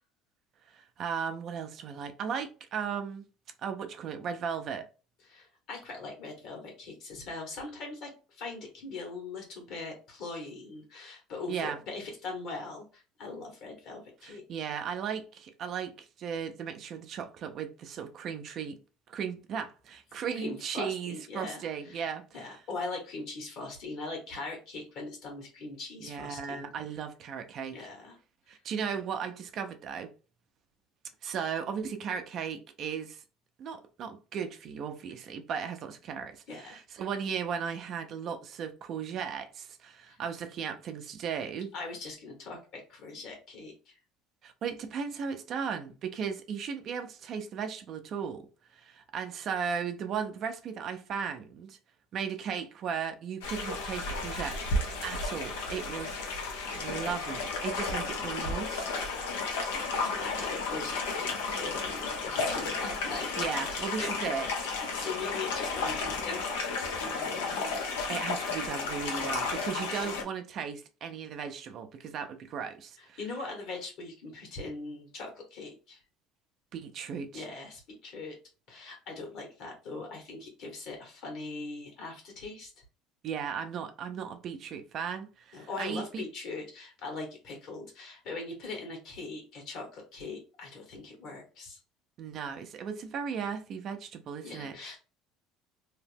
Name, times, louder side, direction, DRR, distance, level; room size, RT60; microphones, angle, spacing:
voice 1, 0.7-3.2 3.6-4.9 11.5-11.8 14.2-18.8 19.1-22.5 26.0-27.9 28.5-30.1 31.2-33.2 33.6-41.7 44.4-48.5 48.7-51.8 52.1-54.6 55.0-56.2 56.7-58.9 63.4-64.7 68.1-73.2 76.7-77.4 83.2-86.2 92.2-94.7, right 7 dB, 55° right, 0.5 m, -36 dB
voice 2, 5.2-14.4 20.3-26.7 27.7-28.2 28.5-28.6 36.5-36.8 40.1-40.2 41.7-44.0 59.7-63.3 63.6-64.1 64.8-67.7 69.2-69.7 73.0-76.0 77.3-78.4 78.7-82.7 85.5-91.8 94.4-95.0, left 3 dB, 65° left, 1.4 m, -41 dB
sound 1, 53.4-70.2, left 3 dB, 90° left, 0.7 m, -33 dB
2.8 x 2.0 x 3.3 m
supercardioid pair, 85°, 0 cm